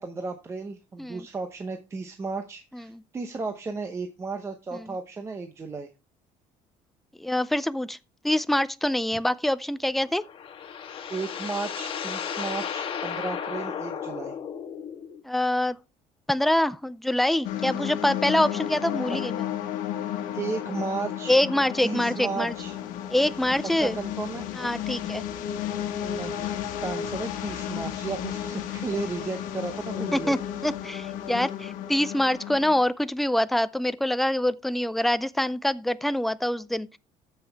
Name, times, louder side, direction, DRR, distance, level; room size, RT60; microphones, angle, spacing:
voice 1, 0.0-5.9 11.1-14.4 19.1-19.2 20.3-21.4 21.8-22.8 23.8-24.5 26.0-30.4, right 4 dB, 20° right, 0.8 m, -34 dB
voice 2, 7.2-8.0 8.2-10.2 15.2-15.8 16.3-19.4 21.3-22.5 23.1-24.0 24.5-25.2 30.1-37.0, left 1 dB, ahead, 0.4 m, -25 dB
sound 1, 10.0-15.2, left 7 dB, 40° left, 1.4 m, -34 dB
sound 2, 17.4-32.7, left 10 dB, 80° left, 1.3 m, -33 dB
14.0 x 5.6 x 3.4 m
cardioid pair, 145°, 13 cm